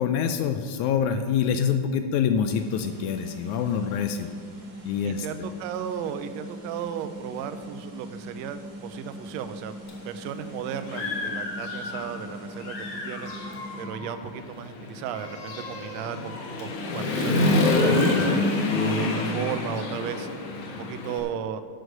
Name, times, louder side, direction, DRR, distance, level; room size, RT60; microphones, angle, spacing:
voice 1, 0.0-4.3 4.9-5.3, left 7 dB, 80° left, 8 dB, 1.8 m, -25 dB
sound 1, 2.5-13.8, equal, 60° right, 0.4 m, -41 dB
voice 2, 5.0-9.8 10.0-13.3 13.8-18.4 18.8-20.3 20.6-21.6, right 9 dB, 80° right, 10 dB, 1.5 m, -35 dB
Human voice / Motorcycle, 9.9-10.0 10.5-12.3 12.6-21.2, left 2 dB, 60° left, 2.0 m, -27 dB
11.0 x 6.4 x 6.5 m, 2.2 s
omnidirectional pair, 3.6 m